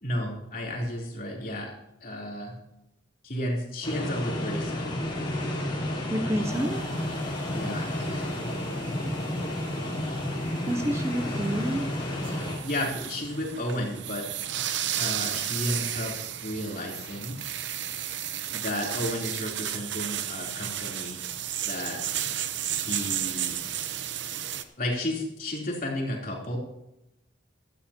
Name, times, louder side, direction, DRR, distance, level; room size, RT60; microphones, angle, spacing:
voice 1, 0.0-1.7 2.0-2.5 3.2-4.9 7.5-7.9 12.6-14.2 14.9-16.1 16.4-17.4 18.5-21.2 21.6-22.0 22.7-23.6 24.8-26.6, left 1 dB, 45° left, -1 dB, 3.4 m, -32 dB
sound 1, 3.8-12.6, left 1 dB, 25° left, 3.5 m, -31 dB
voice 2, 6.1-6.9 10.7-11.9, equal, 15° right, 6 dB, 0.6 m, -29 dB
sound 2, 6.4-24.6, right 10 dB, 70° right, 0.8 m, -34 dB
16.5 x 13.0 x 2.9 m, 0.86 s
head